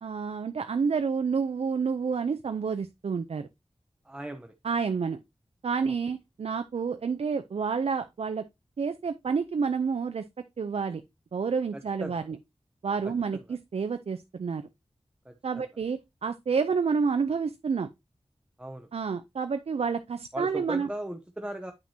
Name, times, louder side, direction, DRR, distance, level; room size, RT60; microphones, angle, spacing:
voice 1, 0.0-3.5 4.6-5.2 5.6-8.5 8.8-11.0 11.3-12.4 12.8-14.7 15.4-17.9 18.9-20.9, right 5 dB, 90° right, 0.5 m, -29 dB
voice 2, 4.0-4.5 5.8-5.9 11.7-12.2 13.3-13.4 15.2-15.6 18.6-18.9 20.3-21.7, right 1 dB, 10° right, 0.8 m, -38 dB
8.9 x 6.0 x 2.8 m
wide cardioid pair, 75°, 10 cm